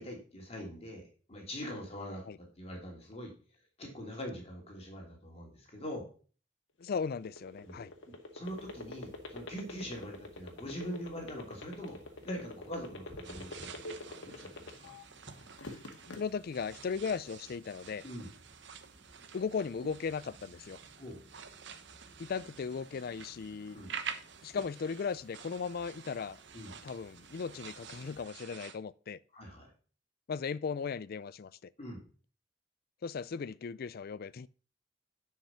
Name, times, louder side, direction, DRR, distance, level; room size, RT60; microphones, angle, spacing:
voice 1, 0.0-3.3 3.8-6.1 7.6-7.8 8.1-14.9 18.0-18.3 21.0-21.2 23.7-23.9 26.5-26.8 29.3-29.7 31.8-32.0, equal, 35° left, 3.0 m, -43 dB
sound 1, 6.8-15.0 15.4-16.2, left 2 dB, 75° left, 1.9 m, -44 dB
voice 2, 6.8-7.9 16.1-18.0 19.3-20.8 22.2-23.8 24.4-26.4 26.8-29.2 30.3-31.7 33.0-34.5, left 5 dB, 55° left, 0.4 m, -37 dB
sound 2, 8.4-28.3, right 1 dB, 45° right, 3.0 m, -61 dB
sound 3, 13.2-28.8, right 7 dB, 70° right, 1.0 m, -49 dB
10.0 x 5.9 x 5.7 m
head